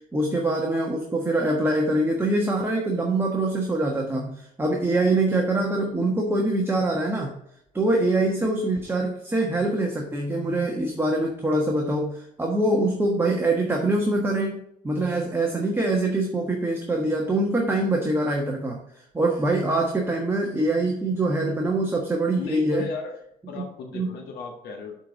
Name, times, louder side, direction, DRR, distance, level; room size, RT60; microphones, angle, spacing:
voice 1, 0.0-7.3 7.7-18.8 19.1-22.9 23.9-24.2, right 2 dB, 15° right, 0 dB, 1.3 m, -24 dB
voice 2, 22.4-23.2 23.5-25.0, left 4 dB, 75° left, 1 dB, 1.7 m, -35 dB
7.2 x 4.5 x 6.8 m, 0.74 s
cardioid pair, 110°, 17 cm